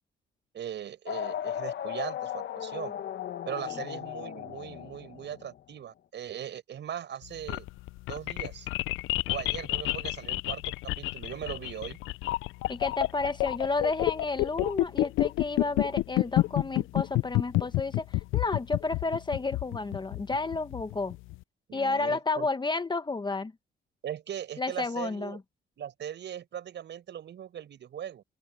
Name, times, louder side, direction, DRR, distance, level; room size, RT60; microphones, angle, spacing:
voice 1, 0.5-3.0 3.5-7.7 8.1-8.7 9.3-12.0 21.7-22.5 24.0-25.4 25.8-28.2, right 9 dB, 65° right, 5.4 m, -39 dB
sound 1, 1.1-5.6, left 10 dB, 60° left, 1.4 m, -36 dB
sound 2, 7.2-21.4, left 18 dB, 90° left, 0.5 m, -29 dB
voice 2, 12.7-21.2 21.7-23.5 24.6-25.4, left 3 dB, 20° left, 1.1 m, -31 dB
open air
cardioid pair, 90°, 20 cm